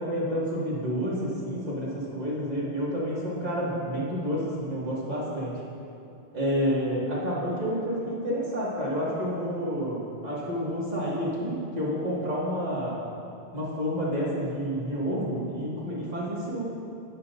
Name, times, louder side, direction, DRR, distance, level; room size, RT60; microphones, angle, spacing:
voice 1, 0.0-5.6 6.3-13.0 13.5-16.7, equal, 40° right, -7 dB, 2.1 m, -29 dB
10.0 x 8.9 x 2.6 m, 2.7 s
omnidirectional pair, 1.1 m